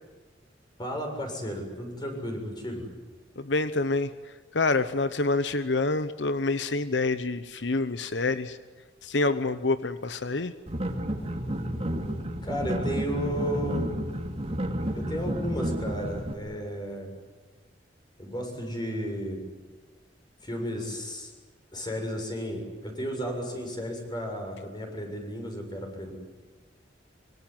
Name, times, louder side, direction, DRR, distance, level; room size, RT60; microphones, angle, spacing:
voice 1, 0.8-2.9 12.4-13.9 14.9-17.1 18.2-19.5 20.4-21.3 21.7-26.1, equal, 25° left, 3 dB, 7.2 m, -33 dB
voice 2, 3.4-4.1 4.5-8.6 9.0-10.5, left 3 dB, 85° left, 12 dB, 1.0 m, -27 dB
sound 1, 10.7-16.3, right 1 dB, 35° right, 2.9 m, -31 dB
25.5 x 24.5 x 9.5 m, 1.3 s
head